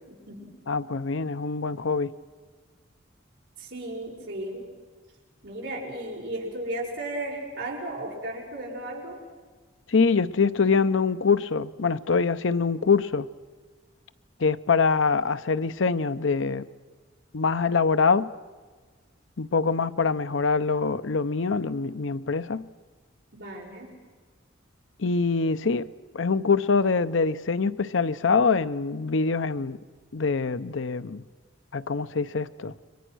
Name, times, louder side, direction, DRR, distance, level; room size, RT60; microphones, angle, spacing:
voice 1, 0.1-0.5 3.6-4.7 5.4-9.2 23.3-23.9, right 1 dB, 60° right, 7.0 m, -35 dB
voice 2, 0.7-2.1 9.9-13.3 14.4-16.7 17.3-18.3 19.4-22.7 25.0-25.9 26.1-29.8 30.1-31.2 31.7-32.7, left 4 dB, 75° left, 0.7 m, -24 dB
30.0 x 24.0 x 6.3 m
head